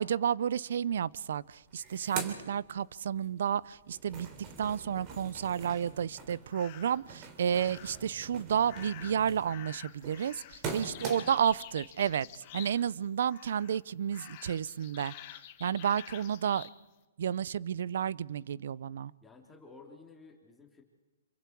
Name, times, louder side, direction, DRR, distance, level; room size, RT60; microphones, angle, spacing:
voice 1, 0.0-4.3 4.6-15.1 15.6-16.7 17.2-19.1, right 8 dB, 65° right, 0.6 m, -31 dB
sound 1, 1.1-1.2 1.5-3.3 3.6-11.5, right 5 dB, 30° right, 3.4 m, -44 dB
sound 2, 6.5-7.1 7.5-8.1 8.7-13.0 13.3-13.8 14.1-16.8, left 14 dB, 40° left, 1.5 m, -49 dB
voice 2, 10.6-11.2 19.2-20.8, left 4 dB, 10° left, 3.5 m, -54 dB
27.5 x 24.5 x 4.7 m
hypercardioid pair, 135°, 0 cm